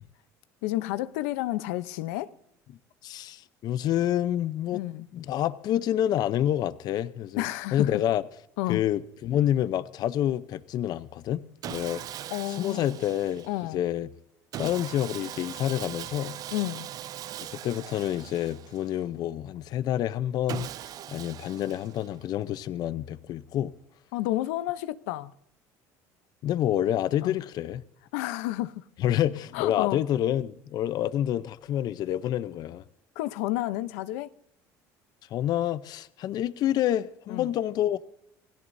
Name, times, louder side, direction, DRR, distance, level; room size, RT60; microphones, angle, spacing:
voice 1, 0.6-2.3 4.7-5.1 7.4-7.9 8.6-8.8 12.3-12.9 13.4-13.8 16.5-16.9 24.1-25.3 27.2-27.4 28.1-28.8 29.5-30.0 33.2-34.3 37.3-37.5, left 16 dB, 90° left, 0.7 m, -30 dB
voice 2, 3.0-4.8 5.1-7.5 7.7-8.2 8.7-11.4 11.7-12.0 12.6-13.5 13.7-14.1 14.6-16.4 17.5-20.7 21.1-23.7 26.4-27.8 29.0-32.8 35.3-38.0, left 11 dB, 55° left, 0.7 m, -28 dB
Sawing, 11.6-13.7 14.5-19.1 20.5-22.3, right 12 dB, 50° right, 0.5 m, -40 dB
28.0 x 16.5 x 2.7 m
supercardioid pair, 105°, 8 cm